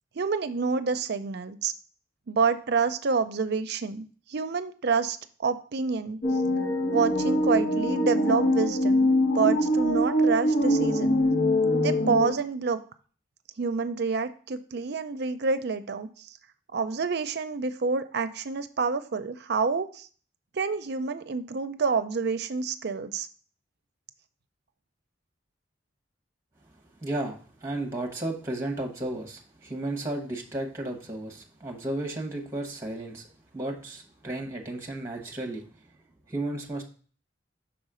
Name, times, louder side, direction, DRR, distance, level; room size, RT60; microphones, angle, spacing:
voice 1, 0.2-1.7 2.3-6.2 6.9-11.2 11.8-12.8 13.6-16.3 16.7-20.1 20.5-23.3, right 5 dB, 60° right, 10 dB, 0.5 m, -28 dB
sound 1, 6.2-12.3, left 1 dB, 70° left, 1.4 m, -23 dB
voice 2, 27.0-33.3 33.5-35.6 36.3-36.8, right 1 dB, 15° right, 3 dB, 1.1 m, -33 dB
6.1 x 4.1 x 4.9 m, 0.41 s
head